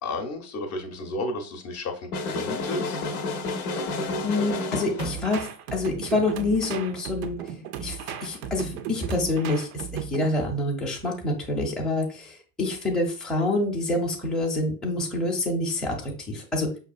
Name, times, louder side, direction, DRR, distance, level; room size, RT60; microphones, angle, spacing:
voice 1, 0.0-3.0, left 2 dB, 35° left, 4 dB, 0.7 m, -32 dB
sound 1, 2.1-5.3, left 3 dB, 80° left, 0.7 m, -30 dB
voice 2, 4.0-7.4 7.8-16.7, left 2 dB, ahead, -2 dB, 0.6 m, -27 dB
sound 2, 5.0-10.5, right 8 dB, 45° right, 0.4 m, -36 dB
5.3 x 2.3 x 2.3 m, 0.37 s
hypercardioid pair, 90°, 43 cm